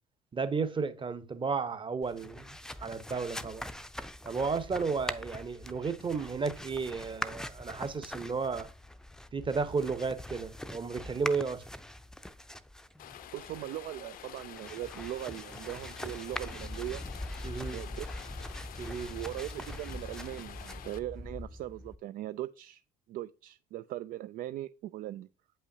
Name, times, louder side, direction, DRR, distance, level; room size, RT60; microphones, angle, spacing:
voice 1, 0.3-3.7 4.2-8.7 9.3-11.6 17.4-17.8 18.8-19.1, right 5 dB, 30° right, 1.0 m, -33 dB
sound 1, 2.0-22.0, left 1 dB, 5° left, 0.6 m, -43 dB
Rain, 13.0-21.0, left 11 dB, 55° left, 0.6 m, -49 dB
voice 2, 13.3-17.0 17.7-18.3 19.1-22.8 23.1-25.3, right 14 dB, 55° right, 0.4 m, -40 dB
8.4 x 5.5 x 2.8 m
hypercardioid pair, 60°, 18 cm